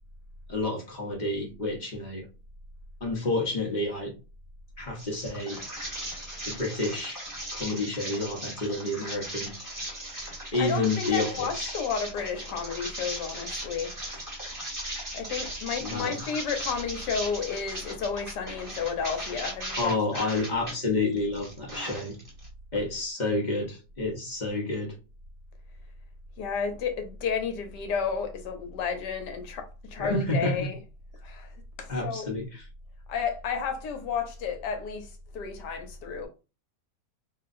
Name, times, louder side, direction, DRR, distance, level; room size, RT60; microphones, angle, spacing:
voice 1, 0.5-2.2 3.0-4.1 4.8-5.6 6.4-7.2 7.5-9.5 10.5-11.7 15.8-16.3 19.8-22.2 22.7-25.0 30.0-30.7 31.9-32.7, left 2 dB, 40° left, 0.7 m, -29 dB
sound 1, 5.0-20.7 21.2-22.5, right 1 dB, 15° right, 1.0 m, -38 dB
voice 2, 10.6-13.9 15.1-20.3 26.4-30.8 31.2-31.5 31.8-32.3 33.1-35.1 35.3-36.3, left 6 dB, 75° left, 1.4 m, -32 dB
3.0 x 2.8 x 2.5 m
omnidirectional pair, 1.8 m